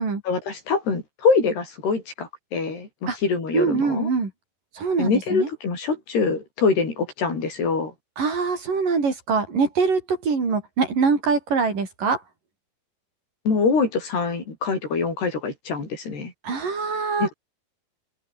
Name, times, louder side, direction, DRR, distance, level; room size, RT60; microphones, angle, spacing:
voice 1, 0.3-4.1 5.0-7.9 13.5-16.3 17.2-17.3, left 4 dB, 90° left, 9.3 m, -24 dB
voice 2, 3.5-4.3 4.7-5.5 8.2-12.2 16.4-17.3, right 4 dB, 55° right, 6.9 m, -23 dB
omnidirectional pair, 4.5 m